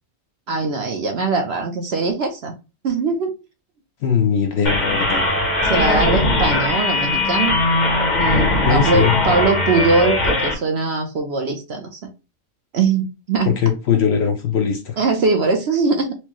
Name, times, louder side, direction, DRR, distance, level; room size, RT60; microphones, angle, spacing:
voice 1, 0.5-2.5 2.8-3.3 5.6-7.6 8.2-12.0 12.7-13.5 15.0-16.2, right 4 dB, 55° right, 0.8 m, -21 dB
voice 2, 4.0-5.2 8.6-9.2 13.5-15.0, left 7 dB, 60° left, 0.8 m, -20 dB
sound 1, 4.6-10.5, left 2 dB, 40° left, 0.9 m, -19 dB
4.5 x 2.1 x 2.9 m
omnidirectional pair, 1.4 m